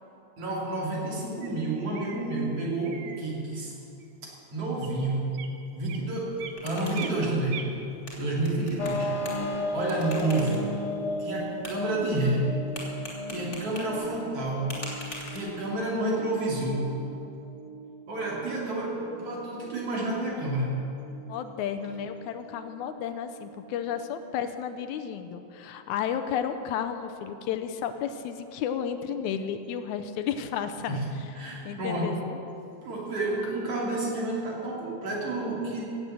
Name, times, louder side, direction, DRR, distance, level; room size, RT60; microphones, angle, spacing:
voice 1, 0.4-3.8 4.2-5.3 5.7-7.7 8.1-10.7 11.2-12.6 13.3-14.8 15.3-17.0 18.1-20.8 30.9-31.1 31.4-32.2 32.8-36.1, right 2 dB, 50° right, -4 dB, 3.6 m, -30 dB
sound 1, 1.4-1.6 1.9-2.3 2.8-3.2 4.0-4.1 4.7-4.9 5.3-5.6 5.8-6.6 6.9-7.7 8.6-9.2, right 7 dB, 70° right, 1.9 m, -42 dB
sound 2, 6.2-15.9, left 1 dB, 25° left, 2.9 m, -45 dB
sound 3, 8.8-24.2, left 1 dB, 60° left, 0.7 m, -37 dB
voice 2, 21.3-31.0 31.7-32.4, left 8 dB, 80° left, 8 dB, 2.1 m, -32 dB
16.5 x 8.7 x 7.8 m, 2.8 s
omnidirectional pair, 3.4 m